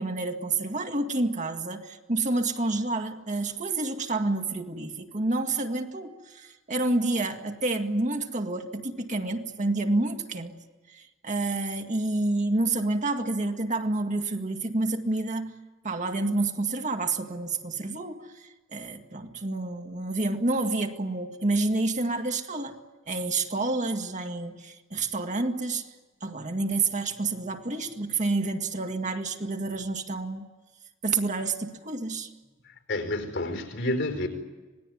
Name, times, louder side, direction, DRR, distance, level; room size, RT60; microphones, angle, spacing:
voice 1, 0.0-10.6 10.9-15.5 15.8-22.8 23.1-25.8 26.2-30.5 31.0-32.3, right 2 dB, 40° right, 6 dB, 1.9 m, -29 dB
voice 2, 32.6-34.3, left 1 dB, 65° left, 6 dB, 4.6 m, -30 dB
26.5 x 19.5 x 9.4 m, 1.2 s
head